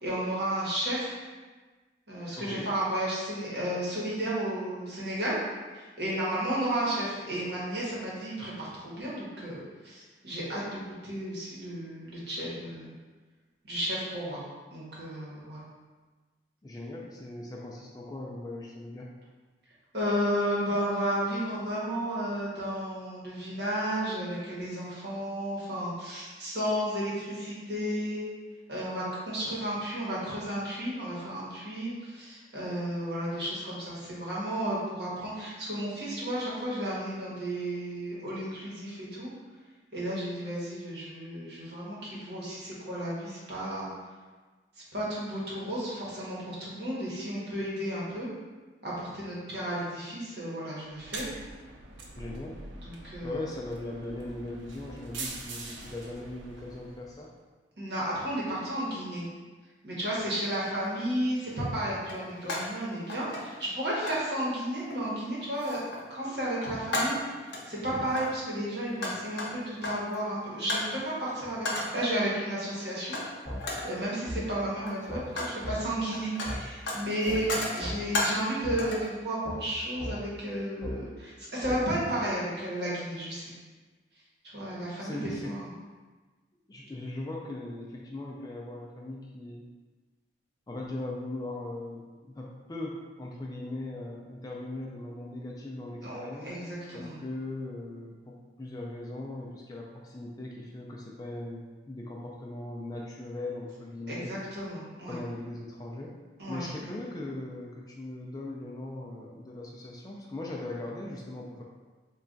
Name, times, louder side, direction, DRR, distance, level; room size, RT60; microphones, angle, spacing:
voice 1, 0.0-1.2 2.1-5.4 5.7-12.9 13.6-14.4 14.7-15.6 19.9-28.2 28.7-39.3 39.9-43.9 44.9-48.3 48.8-51.2 52.8-53.4 57.8-59.3 59.8-65.8 66.1-73.2 73.8-83.5 84.5-85.6 96.0-97.2 104.1-105.2 106.4-106.9, right 1 dB, 60° right, -7 dB, 1.1 m, -33 dB
voice 2, 2.4-2.7 16.6-19.1 52.1-52.6 53.2-57.3 85.0-85.6 86.7-89.6 90.7-96.6 96.9-104.3 105.1-106.2 106.5-111.6, left 2 dB, 20° left, -2 dB, 0.3 m, -39 dB
sound 1, 50.9-57.3, right 2 dB, 85° right, 0.5 m, -43 dB
sound 2, 60.8-60.9 62.0-62.8 63.1-63.7 64.0-64.3 64.9-65.2 65.6-66.1 66.4-67.7 68.1-70.1 70.7-71.0 71.6-72.0 73.1-73.3 73.6-74.0 74.7-75.6 75.9-78.5 78.8-79.1, left 1 dB, 70° left, 0.6 m, -34 dB
sound 3, 73.4-73.6 74.3-74.4 75.1-75.2 75.6-75.8 76.4-76.6 77.3-77.4 77.8-78.0 78.6-78.8 79.4-79.6 80.0-80.1 80.8-80.9 81.6-81.8, equal, 20° right, 1.5 m, -36 dB
3.2 x 2.3 x 3.8 m, 1.3 s
head